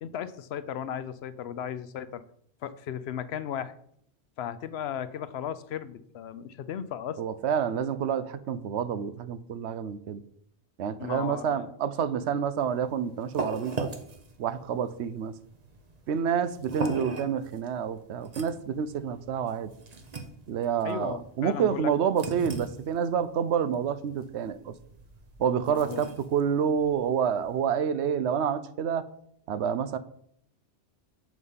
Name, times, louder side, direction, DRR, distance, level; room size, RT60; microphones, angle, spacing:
voice 1, 0.0-2.2 2.6-3.7 4.4-7.2 11.0-11.8 20.8-21.9 25.7-26.1, left 9 dB, 75° left, 14 dB, 0.8 m, -36 dB
voice 2, 7.2-10.2 10.8-13.9 14.4-15.3 16.1-19.7 20.5-24.7 25.4-29.1 29.5-30.0, right 7 dB, 90° right, 13 dB, 0.9 m, -28 dB
sound 1, 12.6-27.6, right 3 dB, 40° right, 1.0 m, -40 dB
8.1 x 5.1 x 5.5 m, 0.68 s
omnidirectional pair, 1.1 m